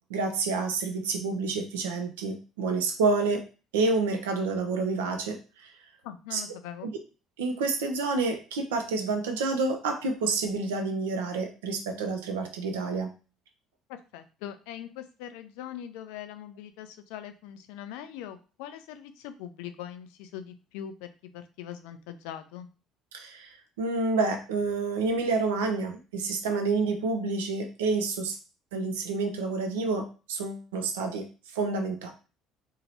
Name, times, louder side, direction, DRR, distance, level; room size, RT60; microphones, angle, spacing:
voice 1, 0.1-3.4 3.7-5.7 6.3-6.4 7.4-13.1 23.1-28.3 28.7-31.2 31.5-32.1, right 3 dB, 70° right, 5 dB, 0.5 m, -28 dB
voice 2, 6.0-6.9 13.9-22.7, left 10 dB, 65° left, 10 dB, 0.3 m, -42 dB
2.9 x 2.8 x 2.7 m, 0.34 s
figure-of-eight pair, 55°, 0 cm